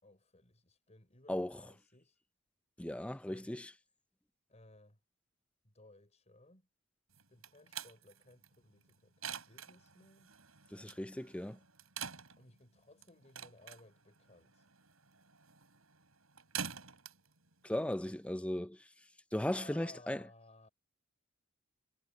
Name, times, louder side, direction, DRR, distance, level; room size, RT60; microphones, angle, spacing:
voice 1, 0.0-2.2 3.0-3.6 4.5-5.0 5.6-6.7 7.1-10.3 12.4-14.7 19.5-20.7, left 2 dB, 35° left, 5.7 m, -60 dB
voice 2, 2.8-3.6 10.7-11.6 17.6-18.8 19.3-20.2, left 1 dB, 5° left, 0.5 m, -36 dB
sound 1, 7.1-18.6, right 7 dB, 90° right, 7.4 m, -48 dB
head